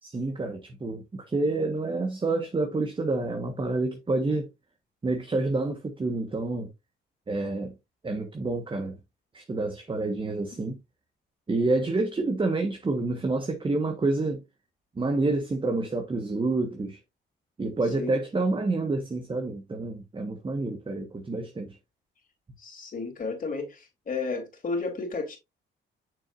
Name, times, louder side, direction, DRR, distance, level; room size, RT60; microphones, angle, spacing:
voice 1, 0.0-4.5 5.0-6.7 7.3-7.7 8.0-9.0 9.3-10.8 11.5-14.4 14.9-17.0 17.6-21.8, right 2 dB, 25° right, 1.3 m, -28 dB
voice 2, 22.6-25.4, left 4 dB, 45° left, 3.3 m, -32 dB
7.1 x 6.3 x 2.5 m
cardioid pair, 90°, 20 cm